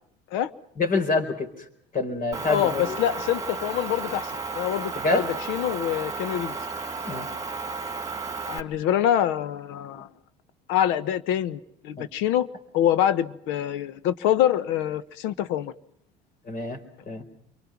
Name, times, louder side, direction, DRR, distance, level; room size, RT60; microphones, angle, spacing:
voice 1, 0.8-1.5 1.9-3.0 4.9-5.3 7.1-7.3 12.0-12.1 16.5-17.2, left 3 dB, 45° left, 4.3 m, -26 dB
Motor vehicle (road) / Engine, 2.3-8.6, right 4 dB, 15° right, 2.6 m, -33 dB
voice 2, 2.5-6.6 8.5-10.1 10.7-12.5 12.7-15.7, left 11 dB, 70° left, 1.2 m, -25 dB
28.5 x 23.5 x 5.9 m
hypercardioid pair, 75°, 20 cm